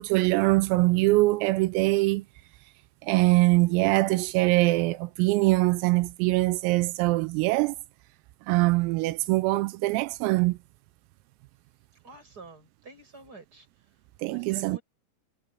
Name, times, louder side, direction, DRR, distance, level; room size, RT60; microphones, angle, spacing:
voice 1, 0.0-2.3 3.0-7.8 8.5-10.6 14.2-14.8, right 21 dB, 85° right, 3.4 m, -23 dB
voice 2, 12.0-13.7 14.3-14.8, right 3 dB, 20° right, 7.8 m, -48 dB
omnidirectional pair, 6.0 m